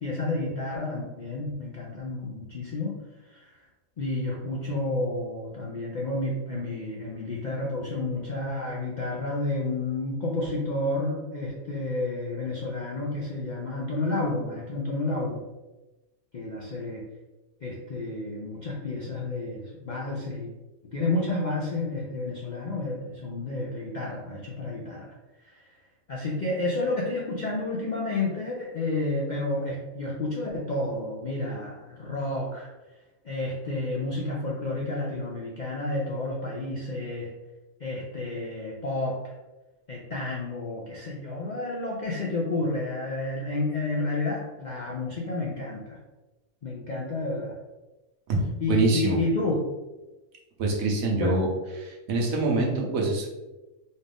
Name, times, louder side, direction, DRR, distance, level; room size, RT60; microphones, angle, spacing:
voice 1, 0.0-2.9 3.3-3.5 4.0-15.4 16.3-17.0 17.6-20.5 20.9-25.7 26.1-32.7 33.2-37.3 37.8-39.2 39.9-46.0 46.6-47.6 48.6-49.6 51.2-51.3, left 2 dB, 60° left, -3 dB, 0.4 m, -30 dB
voice 2, 48.7-49.2 50.6-51.5 51.8-53.3, right 2 dB, 75° right, -1 dB, 1.3 m, -25 dB
4.2 x 2.5 x 3.4 m, 1.1 s
omnidirectional pair, 1.5 m